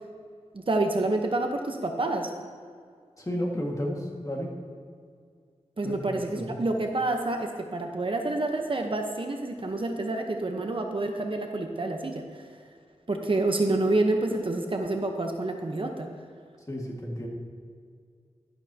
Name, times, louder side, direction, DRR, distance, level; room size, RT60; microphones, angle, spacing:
voice 1, 0.5-2.3 5.8-12.5 13.1-16.1, right 2 dB, 45° right, 3 dB, 0.9 m, -28 dB
voice 2, 3.2-4.5 5.8-5.9 16.7-17.3, equal, 25° left, -1 dB, 1.9 m, -31 dB
11.5 x 11.5 x 2.9 m, 2.1 s
wide cardioid pair, 90°, 12 cm